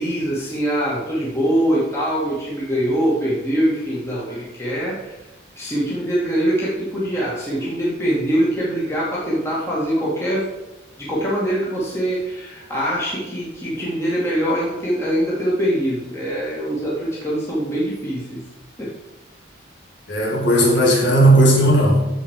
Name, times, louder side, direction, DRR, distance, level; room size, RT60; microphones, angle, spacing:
voice 1, 0.0-5.2 5.6-10.5 11.0-18.4 18.8-18.9, equal, 15° left, -7 dB, 2.4 m, -23 dB
voice 2, 20.1-22.1, right 1 dB, 70° left, -2 dB, 3.3 m, -15 dB
15.0 x 5.2 x 4.9 m, 1.0 s
head